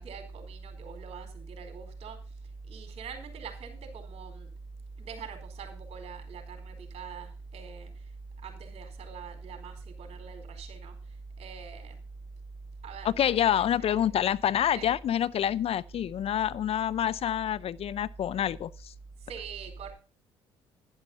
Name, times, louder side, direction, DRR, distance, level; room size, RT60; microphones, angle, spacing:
voice 1, 0.0-2.2 2.6-4.5 5.0-7.9 8.4-11.0 11.4-12.1 12.8-14.0 14.7-15.0 19.2-19.9, right 5 dB, 55° right, 4.2 m, -42 dB
voice 2, 13.0-18.9, left 10 dB, 50° left, 0.5 m, -27 dB
10.5 x 10.5 x 4.3 m
hypercardioid pair, 55°, 13 cm